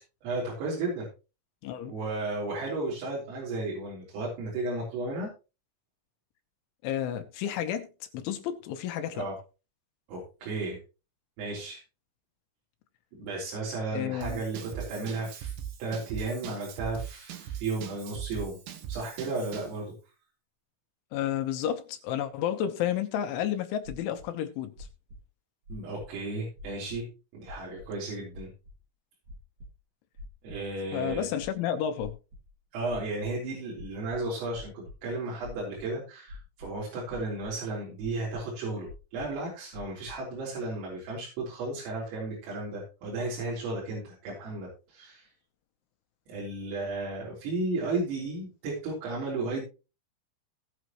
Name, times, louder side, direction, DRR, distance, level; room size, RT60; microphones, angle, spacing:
voice 1, 0.2-1.1 1.9-5.3 9.1-9.4 10.1-10.8 11.4-11.8 13.2-15.5 15.8-18.6 18.9-19.9 25.7-27.1 27.3-28.5 30.4-31.3 32.7-45.3 46.3-49.6, right 2 dB, 90° right, 6.4 m, -34 dB
voice 2, 1.6-1.9 6.8-7.9 8.1-9.3 13.9-14.4 21.1-24.7 30.9-32.2, left 10 dB, 75° left, 3.4 m, -31 dB
Drum kit / Drum, 14.2-19.8, right 9 dB, 65° right, 2.4 m, -40 dB
sound 1, 23.8-24.3 24.8-25.2 25.7-26.2 26.6-27.0 27.5-27.9 28.3-28.7 29.2-29.7 30.2-30.7 31.1-31.5 32.0-32.5 32.9-33.3 33.8-35.0 35.4-35.9 36.3-36.8 37.1-37.5 38.0-38.4 38.9-39.4 39.7-40.2, left 2 dB, 45° right, 4.1 m, -45 dB
19.0 x 6.5 x 3.0 m
omnidirectional pair, 5.7 m